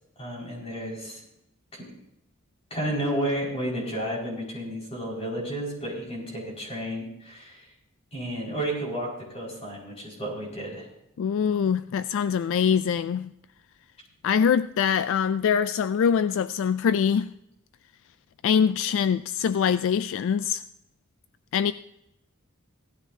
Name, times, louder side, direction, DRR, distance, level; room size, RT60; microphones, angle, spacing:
voice 1, 0.2-1.2 1.7-1.9 2.7-7.7 8.1-10.9, right 1 dB, 30° left, -3 dB, 5.0 m, -32 dB
voice 2, 11.2-13.3 14.2-17.3 18.4-20.6 21.5-21.7, left 7 dB, 60° left, 14 dB, 0.3 m, -23 dB
16.5 x 13.0 x 2.7 m, 0.85 s
head